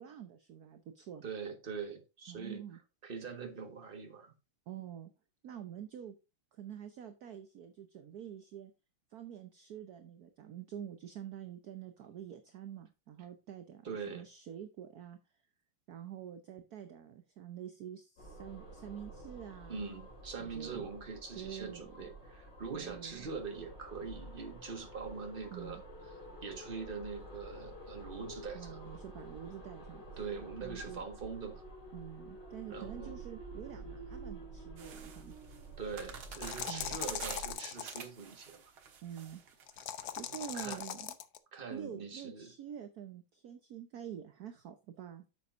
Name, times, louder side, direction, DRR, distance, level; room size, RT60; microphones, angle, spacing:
voice 1, 0.0-1.2 2.3-2.8 4.7-5.1 5.4-6.1 6.5-8.7 9.1-15.2 15.9-19.8 20.4-20.9 21.3-21.9 22.7-23.3 25.5-25.8 28.5-30.0 30.6-31.0 31.9-35.3 36.7-37.0 39.0-39.4 40.2-41.2 41.7-45.2, right 9 dB, 60° right, 1.1 m, -47 dB
voice 2, 1.2-2.6 3.0-4.3 13.8-14.2 19.7-25.8 26.4-28.8 30.2-31.6 32.7-33.2 35.8-38.7 40.5-40.8 41.5-42.5, right 5 dB, 30° right, 1.5 m, -43 dB
sound 1, 18.2-37.5, right 2 dB, 50° left, 3.8 m, -49 dB
sound 2, 34.8-40.8, right 6 dB, 75° right, 2.2 m, -50 dB
sound 3, 36.2-38.0 39.7-41.4, left 10 dB, 65° left, 0.9 m, -40 dB
9.4 x 7.5 x 2.6 m
omnidirectional pair, 2.4 m